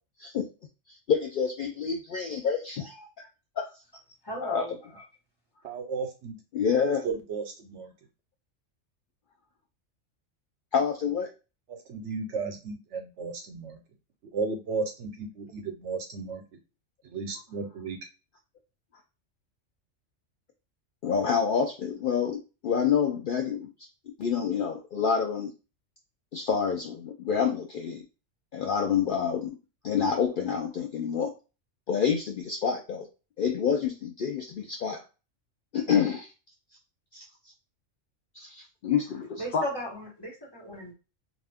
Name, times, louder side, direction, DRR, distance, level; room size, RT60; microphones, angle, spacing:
voice 1, 0.9-3.3 3.6-3.7 4.4-4.6 6.5-7.0 10.7-11.3 21.0-23.7 24.2-25.5 26.3-28.0 28.5-29.5 29.8-31.3 31.9-33.1 33.4-35.0 35.7-36.3 37.1-37.2 38.3-39.6, left 7 dB, 60° left, 2 dB, 0.5 m, -27 dB
voice 2, 4.2-5.0 39.4-40.9, equal, 20° left, -4 dB, 1.2 m, -36 dB
voice 3, 5.6-6.4 7.0-7.9 11.7-13.8 14.3-16.4 17.1-18.0, right 4 dB, 70° right, 4 dB, 0.9 m, -34 dB
2.5 x 2.4 x 3.4 m, 0.30 s
omnidirectional pair, 1.3 m